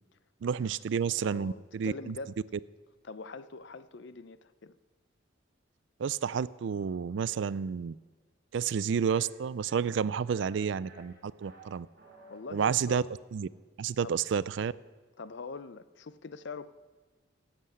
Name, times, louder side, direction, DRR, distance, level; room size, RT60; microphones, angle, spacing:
voice 1, 0.4-2.1 6.0-8.0 8.5-11.9 12.5-13.0 13.3-13.5 13.8-14.7, right 7 dB, 65° right, 19 dB, 0.3 m, -30 dB
voice 2, 1.2-2.3 3.0-4.8 12.3-13.1 14.0-14.2 15.2-16.7, left 4 dB, 60° left, 14 dB, 0.5 m, -43 dB
sound 1, 9.1-9.2 9.7-9.9 10.3-10.6 10.9-11.6 12.0-12.4, right 2 dB, 50° right, 4.4 m, -54 dB
12.0 x 7.6 x 8.3 m, 1.4 s
head